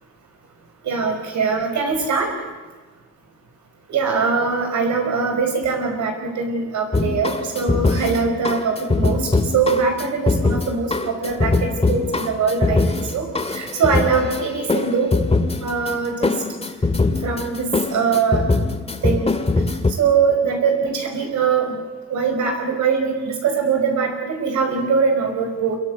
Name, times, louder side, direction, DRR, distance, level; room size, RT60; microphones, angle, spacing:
voice 1, 0.8-2.3 3.9-12.8 13.1-15.1 15.6-16.3 17.2-18.4 19.0-19.3 20.0-21.7 22.1-25.8, right 5 dB, 70° right, 3 dB, 5.2 m, -22 dB
sound 1, 6.9-19.9, left 3 dB, 20° left, 2.0 m, -22 dB
26.0 x 22.0 x 8.0 m, 1.3 s
cardioid pair, 90°, 30 cm